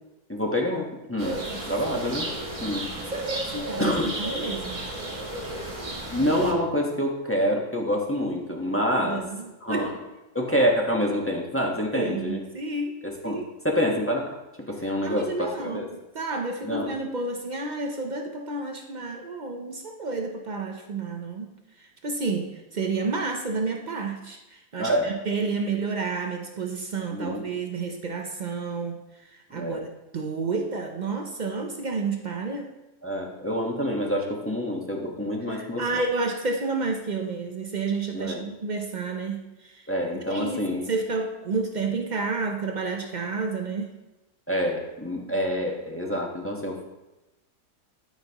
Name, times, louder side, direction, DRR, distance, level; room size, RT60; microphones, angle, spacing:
voice 1, 0.3-1.4 1.7-2.3 2.6-2.9 3.8-4.1 6.1-9.2 9.6-9.9 10.3-12.4 13.0-14.3 14.7-15.9 16.6-16.9 24.8-25.1 27.1-27.4 29.5-29.8 33.0-36.0 38.1-38.4 39.9-40.9 44.5-46.8, equal, 10° left, -1 dB, 1.0 m, -27 dB
sound 1, 1.2-6.5, right 2 dB, 20° right, 1.4 m, -33 dB
voice 2, 3.1-4.9 9.0-9.9 11.9-12.9 13.2-13.5 15.0-15.9 16.1-21.5 21.8-32.7 35.5-39.8 40.3-43.9, right 4 dB, 70° right, 3 dB, 0.4 m, -30 dB
13.0 x 5.8 x 2.9 m, 1.0 s
omnidirectional pair, 1.7 m